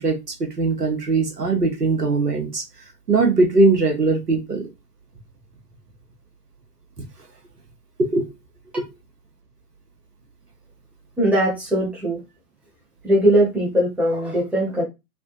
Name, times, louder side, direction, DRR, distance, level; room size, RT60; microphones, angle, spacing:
voice 1, 0.0-2.6 3.1-4.7 8.0-8.3 8.7-8.9, right 3 dB, 85° right, 2 dB, 1.1 m, -20 dB
voice 2, 11.2-12.2 13.0-14.8, right 1 dB, 5° right, -4 dB, 0.8 m, -20 dB
3.3 x 2.2 x 2.6 m, 0.23 s
figure-of-eight pair, 110°, 46 cm